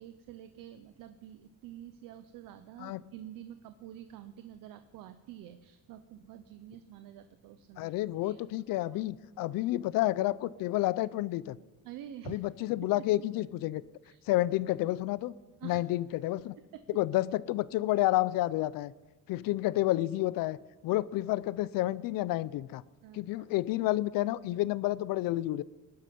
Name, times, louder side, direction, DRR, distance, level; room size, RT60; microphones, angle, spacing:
voice 1, 0.0-7.9 8.2-8.4 11.8-12.4 12.8-12.9 14.0-14.2 15.6-15.8 16.7-16.8 23.0-23.5, right 11 dB, 80° right, 10 dB, 0.8 m, -48 dB
voice 2, 7.8-11.6 12.3-13.8 14.3-15.3 15.6-16.5 16.9-18.9 19.3-20.6 20.8-22.8 23.1-25.6, left 16 dB, 85° left, 19 dB, 0.6 m, -30 dB
19.0 x 12.0 x 5.3 m, 1.2 s
cardioid pair, 140°, 33 cm